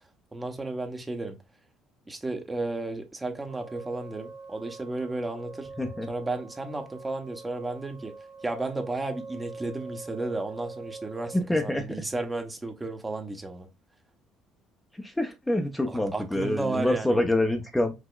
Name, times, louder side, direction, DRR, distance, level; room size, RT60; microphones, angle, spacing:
voice 1, 0.3-1.3 2.1-5.7 6.1-8.1 8.4-13.7 15.9-17.2, right 2 dB, 20° right, 1.0 m, -33 dB
sound 1, 3.5-11.4, right 4 dB, 70° right, 0.8 m, -44 dB
voice 2, 5.8-6.1 11.3-11.9 15.0-17.9, left 1 dB, 10° left, 0.8 m, -26 dB
4.9 x 2.9 x 2.4 m
hypercardioid pair, 55°, 0 cm